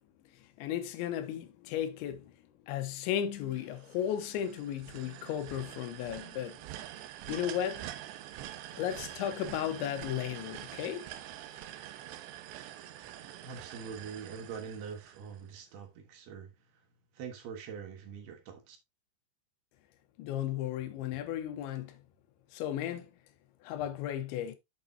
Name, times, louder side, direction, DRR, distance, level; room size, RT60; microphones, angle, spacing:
voice 1, 0.6-2.3 2.7-6.6 7.3-7.9 8.8-11.1 20.2-22.0 22.5-23.1 23.6-24.6, left 10 dB, 85° left, 3.3 m, -35 dB
sound 1, 3.5-15.6, right 12 dB, 85° right, 2.9 m, -46 dB
voice 2, 13.3-16.8 17.1-18.8, right 6 dB, 65° right, 3.2 m, -44 dB
8.6 x 6.6 x 2.7 m
omnidirectional pair, 5.2 m